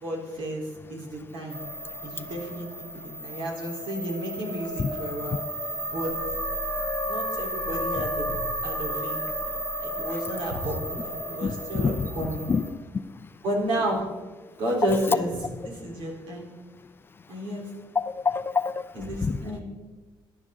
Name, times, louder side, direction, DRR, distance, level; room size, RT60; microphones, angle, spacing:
voice 1, 0.0-1.6 2.0-5.4 5.9-6.2 7.1-8.4 8.6-9.2 9.8-12.5 13.4-14.1 14.6-16.5 17.3-17.7 18.9-19.6, right 1 dB, 75° right, 3.6 m, -31 dB
sound 1, 1.5-12.7, equal, 10° right, 2.8 m, -33 dB
voice 2, 11.4-12.1 12.5-12.6 18.3-18.7 19.2-19.3, left 5 dB, 25° left, 0.5 m, -25 dB
17.5 x 11.0 x 3.7 m
cardioid pair, 145°, 8 cm